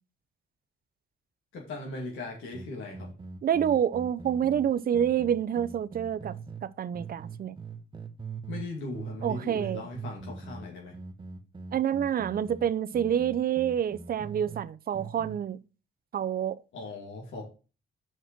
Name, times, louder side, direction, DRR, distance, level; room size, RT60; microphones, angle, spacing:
voice 1, 1.5-3.1 8.5-11.0 16.7-17.4, left 2 dB, 80° left, 2.4 m, -39 dB
sound 1, 2.5-6.6 6.9-8.7 8.9-14.6 14.9-15.4, right 5 dB, 25° right, 1.1 m, -42 dB
voice 2, 3.4-6.3 6.6-7.6 9.2-9.8 11.7-15.6 16.1-16.6, right 9 dB, 50° right, 0.5 m, -28 dB
6.0 x 5.5 x 6.0 m
cardioid pair, 90°, 20 cm